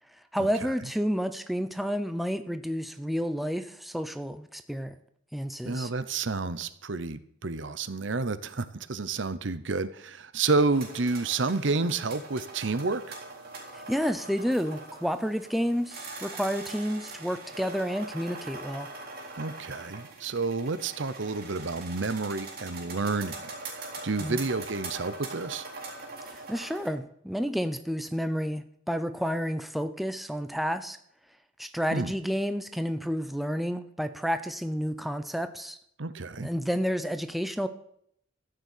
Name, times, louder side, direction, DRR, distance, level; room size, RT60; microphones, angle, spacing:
voice 1, 0.3-5.0 5.3-5.9 13.7-18.9 24.2-24.4 26.3-31.0 31.6-35.8 36.4-37.7, equal, ahead, 9 dB, 0.7 m, -30 dB
voice 2, 5.6-13.1 19.4-23.4 24.0-25.7 31.9-32.1 36.0-36.5, right 3 dB, 70° right, 14 dB, 0.8 m, -30 dB
sound 1, 10.7-26.9, right 3 dB, 50° right, 3.8 m, -42 dB
13.5 x 6.8 x 8.4 m, 0.70 s
head